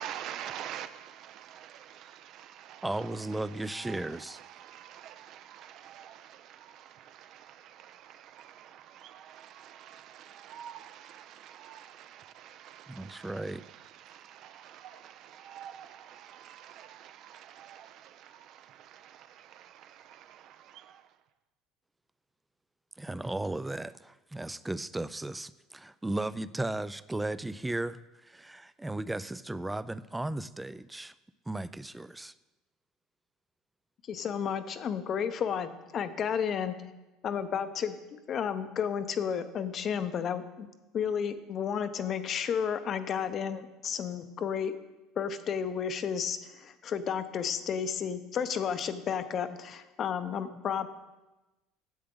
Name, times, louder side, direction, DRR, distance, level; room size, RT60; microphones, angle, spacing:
voice 1, 0.0-2.8 3.9-4.0 4.6-13.3 14.1-20.9, right 10 dB, 60° right, 0.5 m, -47 dB
voice 2, 2.8-4.4 12.9-13.7 23.0-31.1 31.5-32.3 50.5-50.6, right 2 dB, 10° right, 0.3 m, -35 dB
voice 3, 34.1-36.8 37.2-40.7 40.9-44.7 45.2-50.9, left 7 dB, 45° left, 0.7 m, -32 dB
10.5 x 7.7 x 3.8 m
supercardioid pair, 100°, 0 cm